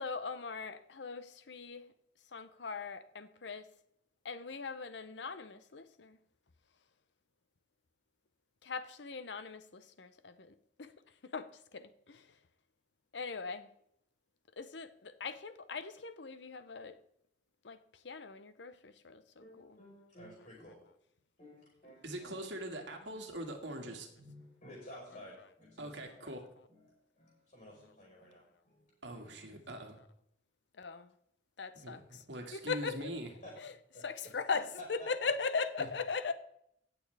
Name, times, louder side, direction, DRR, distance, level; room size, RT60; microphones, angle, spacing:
voice 1, 0.0-1.8 2.3-3.6 4.2-6.2 8.6-10.5 10.8-10.9 11.3-11.5 11.7-12.2 13.1-13.7 14.6-17.0 17.6-17.8 18.0-19.8 30.8-31.1 31.6-32.2 32.5-33.1 33.6-33.7 34.0-36.3, left 4 dB, 75° left, 0.8 m, -39 dB
voice 2, 19.4-20.8 21.4-22.4 23.0-23.1 23.8-26.3 26.7-29.6 33.4-33.5 33.9-35.3, left 1 dB, 45° left, 4.8 m, -53 dB
voice 3, 22.0-24.1 25.8-26.4 29.0-30.0 31.7-33.3 35.8-35.9, right 1 dB, 85° right, 2.0 m, -43 dB
17.0 x 7.0 x 3.4 m
head